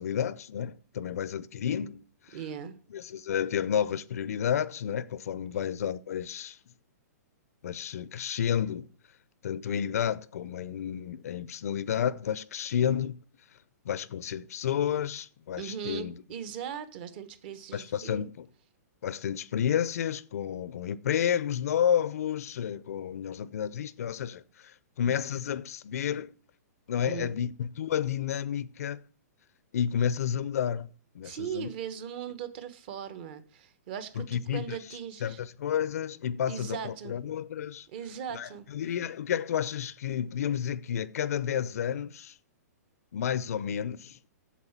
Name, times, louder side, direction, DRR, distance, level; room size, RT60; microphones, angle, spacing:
voice 1, 0.0-2.4 2.9-6.6 7.6-8.9 9.4-13.2 13.8-16.1 17.7-18.5 19.0-26.3 26.9-29.0 29.7-31.7 34.2-34.8 35.2-37.9 38.3-42.4 43.1-44.2, left 9 dB, 60° left, 0.6 m, -31 dB
voice 2, 2.3-2.8 15.6-18.3 27.0-27.3 31.2-35.4 36.5-37.2 37.9-38.7, right 8 dB, 40° right, 1.2 m, -39 dB
8.3 x 7.4 x 7.3 m
hypercardioid pair, 160°, 9 cm